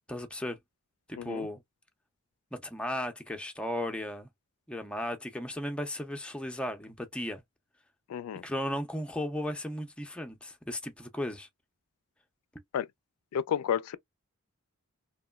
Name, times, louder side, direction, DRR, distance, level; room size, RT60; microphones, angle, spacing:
voice 1, 0.1-0.6 1.1-1.6 2.5-4.3 4.7-7.4 8.4-11.5, left 1 dB, 5° left, 0.4 m, -35 dB
voice 2, 1.2-1.5 8.1-8.4 12.7-12.9 13.3-14.0, left 8 dB, 75° left, 0.3 m, -31 dB
2.9 x 2.1 x 2.2 m
head